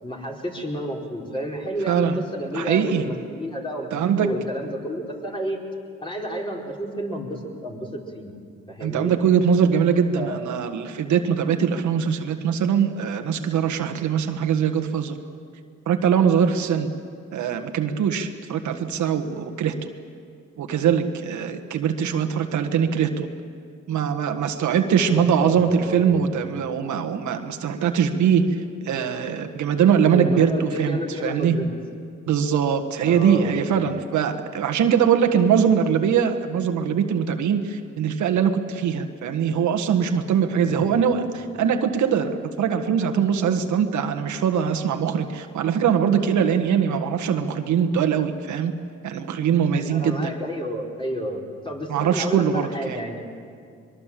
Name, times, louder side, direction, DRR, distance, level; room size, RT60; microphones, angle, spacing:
voice 1, 0.0-5.6 6.0-8.3 8.7-9.1 10.2-10.4 25.1-26.3 30.1-31.7 33.1-33.6 40.6-41.2 49.9-53.2, equal, 15° left, -1 dB, 4.5 m, -31 dB
voice 2, 1.9-2.2 2.5-3.1 3.9-4.3 8.8-15.2 15.9-16.9 17.3-19.9 20.6-23.3 23.9-31.7 32.3-48.7 49.0-50.3 51.9-53.0, right 7 dB, 75° right, 6 dB, 1.6 m, -22 dB
23.0 x 22.5 x 7.6 m, 2.3 s
cardioid pair, 90°, 30 cm